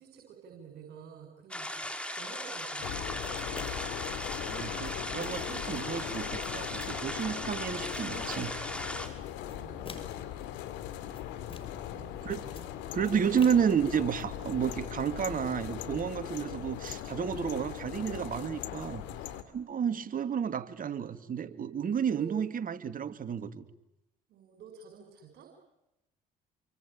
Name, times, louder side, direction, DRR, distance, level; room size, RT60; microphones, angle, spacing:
voice 1, 0.0-1.9 2.2-3.3 9.3-10.1 11.5-13.8 19.9-20.1 21.8-22.4 24.3-25.5, right 7 dB, 65° right, 4 dB, 6.3 m, -51 dB
sound 1, 1.5-9.1, left 1 dB, 5° left, 5.7 m, -38 dB
sound 2, 2.8-19.4, left 11 dB, 75° left, 2.8 m, -39 dB
sound 3, 3.2-4.0 4.6-5.6 6.2-7.1 7.7-8.5 9.3-10.3 10.9-11.9 12.2-14.2, left 3 dB, 30° left, 5.8 m, -49 dB
voice 2, 4.4-8.5 12.2-12.4 12.9-19.0 19.5-23.6, right 7 dB, 50° right, 11 dB, 2.5 m, -31 dB
27.5 x 24.5 x 8.9 m, 0.91 s
hypercardioid pair, 60°, 18 cm